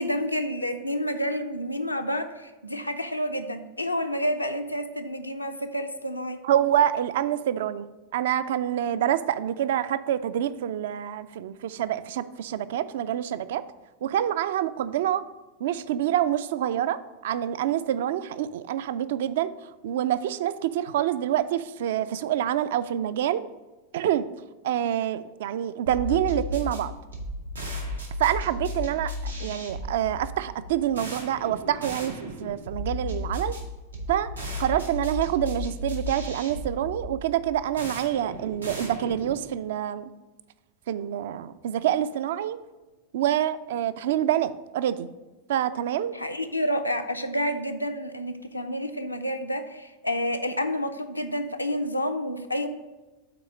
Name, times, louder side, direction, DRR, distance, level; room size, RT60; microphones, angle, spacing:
voice 1, 0.0-6.4 46.1-52.7, equal, 85° left, 6 dB, 0.5 m, -29 dB
voice 2, 6.4-13.6 14.0-15.2 15.6-23.4 23.9-24.3 24.6-26.9 28.2-33.6 34.1-40.1 40.9-42.6 43.1-45.1 45.5-46.2, right 11 dB, 55° right, 14 dB, 0.3 m, -27 dB
sound 1, 25.9-39.5, left 1 dB, 85° right, 1.2 m, -35 dB
5.9 x 4.1 x 6.0 m, 1.2 s
figure-of-eight pair, 90°, 0 cm